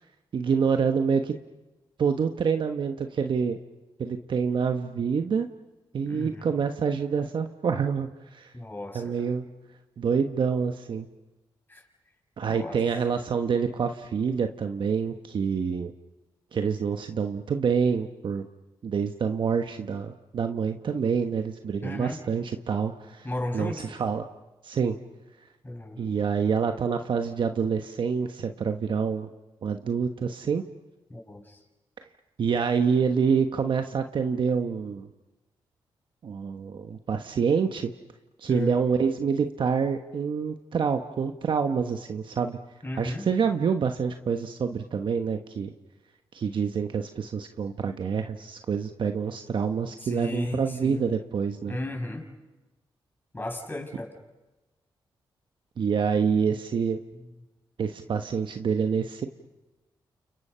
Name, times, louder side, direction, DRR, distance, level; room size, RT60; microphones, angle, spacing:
voice 1, 0.3-1.3 2.0-3.6 4.0-5.5 5.9-8.5 8.9-9.5 10.0-11.1 12.4-15.9 16.5-18.5 18.8-23.3 23.5-24.2 24.6-25.0 26.0-29.3 29.6-30.6 32.4-35.1 36.2-37.9 38.4-42.6 43.0-45.7 46.3-51.8 55.8-57.0 57.8-59.3, right 6 dB, 60° right, 6 dB, 1.2 m, -27 dB
voice 2, 6.0-6.5 8.5-9.3 11.7-11.8 12.5-12.8 21.8-22.2 23.2-23.8 25.6-26.0 31.1-31.6 38.5-38.8 42.8-43.3 50.0-51.1 51.7-52.2 53.3-54.1 57.1-57.3, left 1 dB, 20° left, 3 dB, 6.3 m, -34 dB
30.0 x 29.5 x 5.7 m, 1.1 s
cardioid pair, 60°, 9 cm